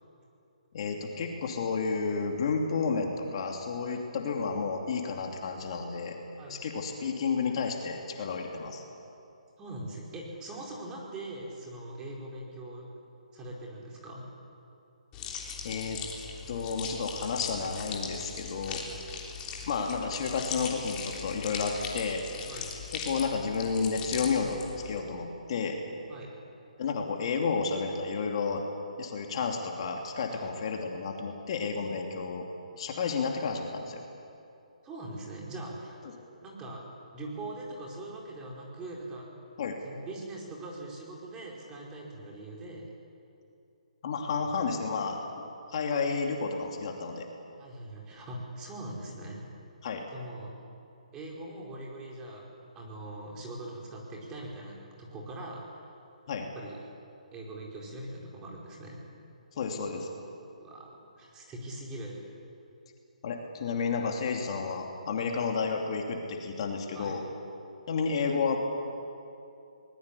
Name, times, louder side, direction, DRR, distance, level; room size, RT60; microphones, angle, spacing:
voice 1, 0.7-6.2 6.5-8.8 15.3-16.0 16.5-18.8 19.7-22.2 22.9-24.6 24.8-25.8 26.8-28.6 29.0-32.4 32.8-34.0 39.6-39.8 44.0-47.3 49.8-50.1 56.3-56.5 59.5-60.1 63.2-67.2 67.9-68.6, left 5 dB, 45° left, 2 dB, 2.7 m, -31 dB
voice 2, 9.6-12.9 13.3-14.3 18.8-19.1 22.5-22.7 26.1-26.3 30.3-30.5 34.8-36.0 36.4-36.8 37.1-39.3 39.8-42.9 44.4-44.6 47.6-49.5 50.1-50.5 51.1-52.5 52.7-55.8 56.5-56.8 57.3-59.0 60.6-62.2 65.2-65.4 66.9-67.2, right 1 dB, 15° right, -3 dB, 4.8 m, -42 dB
sound 1, 15.1-25.0, left 6 dB, 20° left, 3.5 m, -39 dB
23.5 x 20.0 x 8.5 m, 2.7 s
hypercardioid pair, 145°, 4 cm